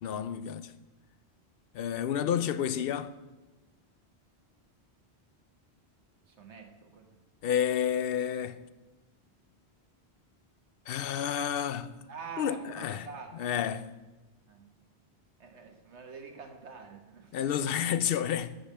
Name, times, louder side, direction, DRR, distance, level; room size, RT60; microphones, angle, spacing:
voice 1, 0.0-0.7 1.7-3.1 7.4-8.6 10.9-11.9 12.4-13.1 13.3-13.9 17.3-18.6, left 9 dB, 65° left, 0.7 m, -30 dB
voice 2, 6.3-7.1 12.1-13.5 14.5-14.6 15.4-17.4, right 5 dB, 90° right, 1.5 m, -46 dB
11.0 x 5.4 x 7.5 m
omnidirectional pair, 1.1 m